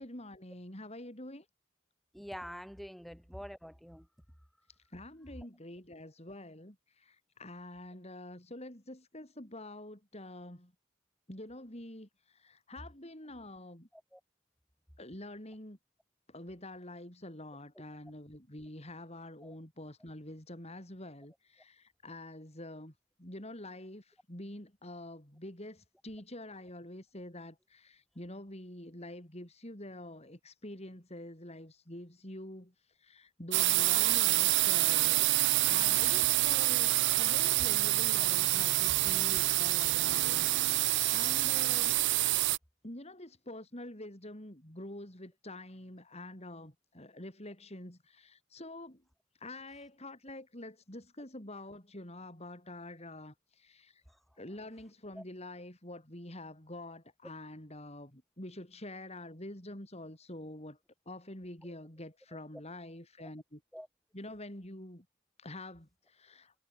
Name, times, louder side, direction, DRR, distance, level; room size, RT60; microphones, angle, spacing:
voice 1, 0.0-1.5 4.9-10.7 11.3-13.9 15.0-15.8 16.3-22.9 23.2-35.2 35.7-42.0 42.8-49.0 49.4-54.0 54.4-60.8 61.1-63.6 64.1-65.1 65.4-66.5, left 1 dB, 30° left, 4.4 m, -46 dB
voice 2, 2.1-4.1 13.9-14.2 19.4-19.5 54.1-54.2 55.1-55.2 63.7-63.9, equal, ahead, 6.5 m, -46 dB
sound 1, 33.5-42.6, right 18 dB, 55° right, 0.4 m, -27 dB
head